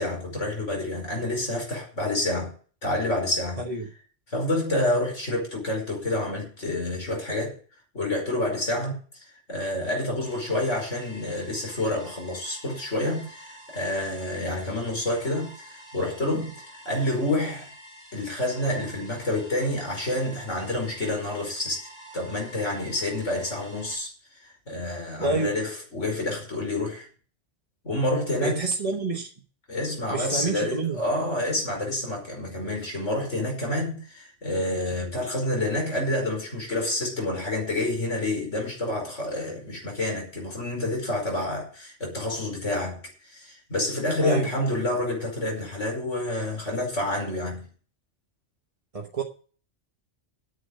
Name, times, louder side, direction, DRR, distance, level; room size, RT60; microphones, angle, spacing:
voice 1, 0.0-2.5 2.8-3.6 4.3-7.6 7.9-17.7 18.1-21.9 22.1-24.1 24.4-27.1 27.8-28.6 29.7-47.7, left 1 dB, 85° left, 5.5 m, -28 dB
voice 2, 3.6-3.9 16.3-16.4 25.2-25.6 28.4-29.3 30.1-31.0 44.2-44.5 48.9-49.2, right 3 dB, 30° right, 1.3 m, -28 dB
sound 1, 10.2-23.9, right 1 dB, 25° left, 5.2 m, -48 dB
10.0 x 8.0 x 6.8 m
omnidirectional pair, 1.2 m